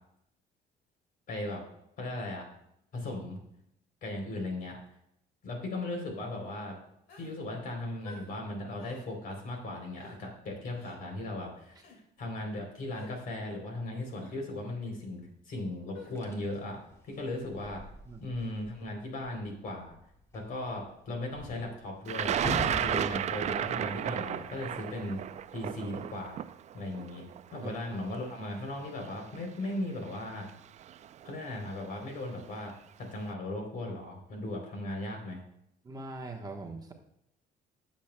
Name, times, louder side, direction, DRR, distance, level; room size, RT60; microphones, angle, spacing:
voice 1, 1.3-1.6 2.0-2.5 2.9-3.4 4.0-4.8 5.4-6.8 7.2-16.8 17.1-17.8 18.2-19.9 20.3-25.2 25.5-26.3 26.7-27.2 27.5-30.5 31.2-32.7 33.0-35.4, left 1 dB, 55° left, 2 dB, 3.4 m, -37 dB
sound 1, 7.1-7.4 8.0-8.3 8.8-9.0 9.9-10.2 10.8-11.0 11.7-12.0 12.9-13.2 14.2-14.4 15.9-16.2, left 3 dB, 85° left, 2.3 m, -50 dB
sound 2, 16.2-18.9 19.2-19.5 19.9-25.2 25.9-26.2, left 1 dB, 15° left, 1.7 m, -42 dB
Thunder, 22.1-28.1 29.0-29.1 30.2-30.5 30.8-31.3, right 10 dB, 45° right, 0.4 m, -33 dB
voice 2, 35.8-36.9, right 2 dB, 20° right, 1 dB, 1.1 m, -41 dB
15.5 x 7.3 x 2.2 m, 0.75 s
cardioid pair, 110°, 17 cm